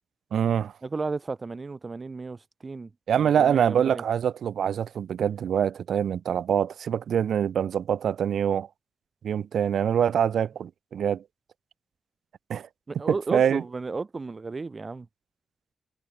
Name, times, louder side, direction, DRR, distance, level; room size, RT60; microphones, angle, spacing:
voice 1, 0.3-0.7 3.1-8.7 9.2-11.2 12.5-12.7 13.3-13.6, right 8 dB, 75° right, 0.4 m, -24 dB
voice 2, 0.8-2.9 3.2-4.0 12.9-15.1, right 3 dB, 25° right, 1.6 m, -33 dB
wide cardioid pair, 175°, 0 cm